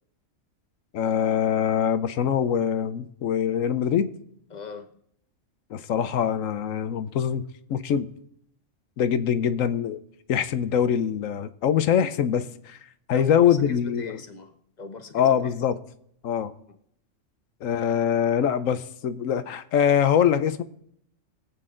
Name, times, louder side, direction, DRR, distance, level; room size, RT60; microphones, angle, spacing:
voice 1, 0.9-4.1 5.7-8.1 9.0-10.0 10.3-12.8 13.1-14.2 15.1-15.8 16.2-16.5 17.6-20.6, left 8 dB, 85° left, 1.1 m, -23 dB
voice 2, 4.5-4.9 13.1-15.5 16.7-16.8, left 4 dB, 35° left, 1.2 m, -40 dB
21.5 x 8.4 x 3.8 m
omnidirectional pair, 1.3 m